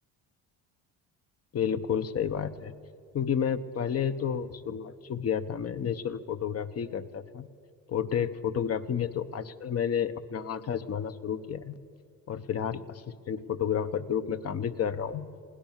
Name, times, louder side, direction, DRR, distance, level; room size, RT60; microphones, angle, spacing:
voice 1, 1.5-2.7 3.1-7.5 7.9-11.7 12.3-15.3, left 8 dB, 45° left, 12 dB, 0.9 m, -31 dB
21.5 x 17.0 x 7.3 m, 2.2 s
supercardioid pair, 90°, 36 cm